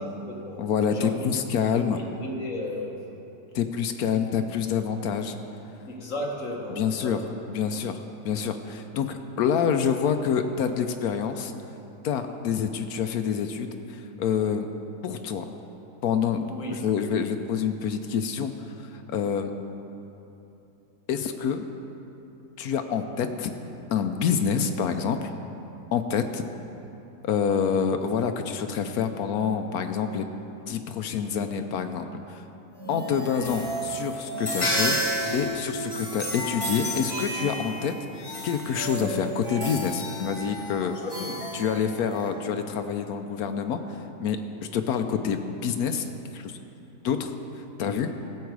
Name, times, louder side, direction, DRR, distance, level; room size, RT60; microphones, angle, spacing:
voice 1, 0.0-1.3 1.7-3.0 5.8-7.2 16.5-16.8 23.1-23.3 40.8-41.3 47.8-48.0, left 1 dB, 50° left, -1 dB, 1.6 m, -35 dB
voice 2, 0.6-2.0 3.5-5.4 6.7-7.2 7.5-11.5 12.0-14.7 15.0-15.5 16.0-18.5 18.9-19.5 21.1-21.7 22.6-23.5 23.9-25.3 25.9-26.4 27.2-30.3 30.7-32.4 32.9-35.0 35.3-40.9 41.5-43.8 44.2-44.4 44.7-46.5 47.0-47.3 47.8-48.1, left 7 dB, 70° left, 7 dB, 1.0 m, -27 dB
sound 1, 32.8-42.3, equal, 15° left, 1.5 m, -31 dB
15.5 x 8.1 x 4.7 m, 2.9 s
omnidirectional pair, 1.8 m